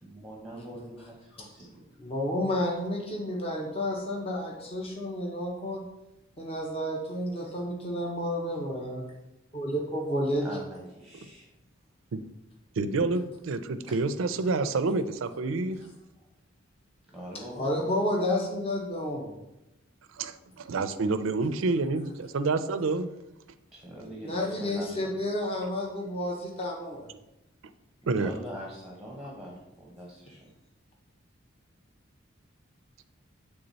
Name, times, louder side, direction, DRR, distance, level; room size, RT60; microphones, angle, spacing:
voice 1, 0.0-1.8 10.3-11.5 14.6-14.7 17.1-17.8 23.7-25.2 28.0-30.5, equal, ahead, -4 dB, 0.9 m, -43 dB
voice 2, 2.0-5.8 6.4-9.0 9.5-10.4 17.5-19.3 24.2-27.1, left 1 dB, 30° left, -1 dB, 0.9 m, -30 dB
voice 3, 12.8-15.8 20.1-23.1 28.1-28.3, right 3 dB, 70° right, 11 dB, 0.4 m, -28 dB
7.8 x 3.5 x 4.0 m, 0.94 s
head